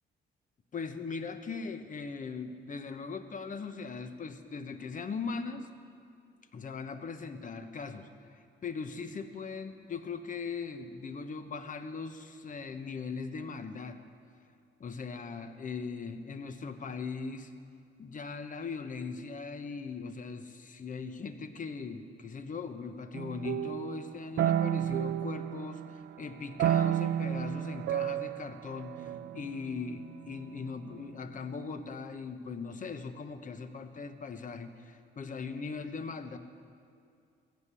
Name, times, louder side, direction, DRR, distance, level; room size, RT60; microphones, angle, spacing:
voice 1, 0.7-5.7 6.5-14.0 14.8-17.5 18.0-36.4, left 5 dB, 40° left, 9 dB, 1.0 m, -40 dB
sound 1, 23.1-26.1 26.6-30.5, right 11 dB, 65° right, 0.4 m, -31 dB
15.0 x 8.3 x 6.9 m, 2.4 s
cardioid pair, 90°, 20 cm